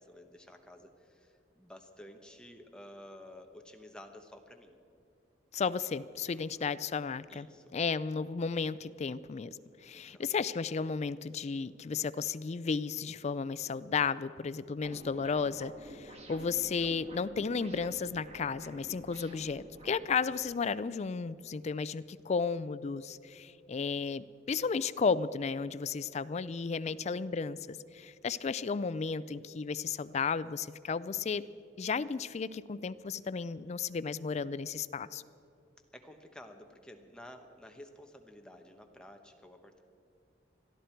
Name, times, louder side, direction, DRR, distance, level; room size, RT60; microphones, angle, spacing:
voice 1, 0.0-4.8 6.3-6.6 7.3-7.7 9.9-10.2 26.8-27.2 35.9-39.8, left 1 dB, 5° left, 4 dB, 1.1 m, -52 dB
voice 2, 5.5-7.5 7.7-31.4 31.8-35.2, left 5 dB, 40° left, 16 dB, 0.4 m, -34 dB
sound 1, 14.8-20.2, right 1 dB, 35° right, 1.7 m, -50 dB
21.5 x 13.5 x 4.5 m, 2.6 s
head